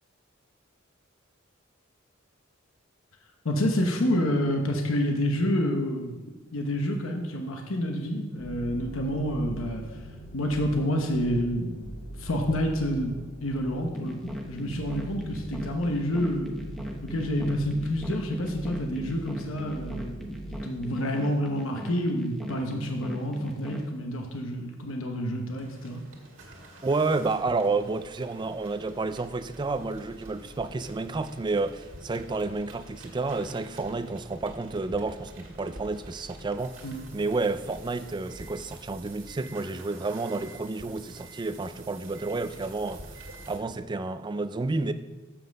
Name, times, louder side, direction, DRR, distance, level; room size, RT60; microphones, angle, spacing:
voice 1, 3.4-6.3 6.5-9.8 10.3-11.9 12.2-14.2 14.5-16.5 17.0-26.0 36.8-37.0, equal, 75° left, 1.0 m, -28 dB
sound 1, 8.4-20.6, right 1 dB, 45° left, 2.9 m, -42 dB
sound 2, 13.9-23.9, equal, ahead, 0.9 m, -39 dB
sound 3, 25.6-43.6, right 2 dB, 65° right, 1.9 m, -48 dB
voice 2, 26.8-36.8 37.1-44.9, right 3 dB, 20° right, 0.4 m, -30 dB
7.3 x 5.8 x 6.5 m
head